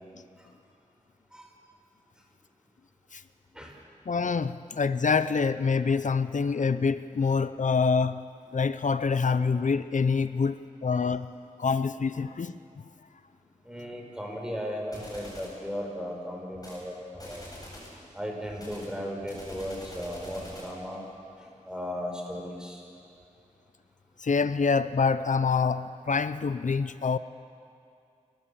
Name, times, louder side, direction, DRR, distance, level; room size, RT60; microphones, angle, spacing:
voice 1, 4.1-8.2 8.5-11.3 11.6-12.6 24.2-27.2, left 5 dB, 65° left, 0.6 m, -26 dB
voice 2, 13.6-17.4 17.9-21.0 21.4-22.8, equal, 5° right, 5.1 m, -36 dB
sound 1, 14.9-15.6 16.5-16.8 17.1-18.0 18.6-20.8, left 1 dB, 25° left, 7.9 m, -45 dB
30.0 x 14.5 x 7.1 m
wide cardioid pair, 55°, 14 cm